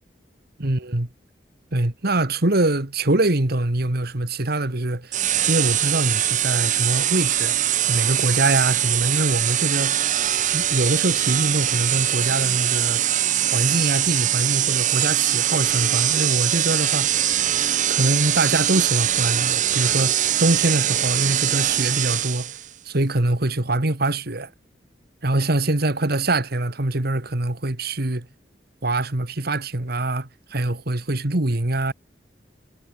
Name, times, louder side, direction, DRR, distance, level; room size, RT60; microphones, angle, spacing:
voice 1, 0.6-1.1 1.7-5.2 5.5-10.0 10.5-13.0 13.5-17.1 17.9-22.5 22.9-24.5 25.2-28.3 28.8-31.9, right 2 dB, 60° right, 2.0 m, -23 dB
sound 1, 5.1-22.7, right 11 dB, 45° right, 0.9 m, -22 dB
head